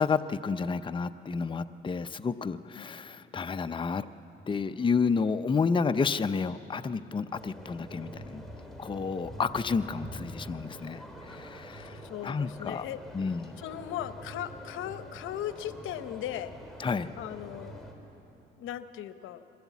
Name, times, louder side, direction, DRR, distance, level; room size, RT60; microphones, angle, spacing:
voice 1, 0.0-4.1 4.5-8.4 8.8-11.9 12.2-12.8 13.1-13.5 16.8-17.1, left 5 dB, 25° left, 10 dB, 0.6 m, -30 dB
sound 1, 7.3-17.9, equal, ahead, 3.4 m, -45 dB
voice 2, 12.0-16.5 17.2-17.8 18.6-19.4, left 11 dB, 85° left, 12 dB, 0.8 m, -38 dB
22.0 x 17.5 x 8.3 m, 2.8 s
cardioid pair, 90°, 20 cm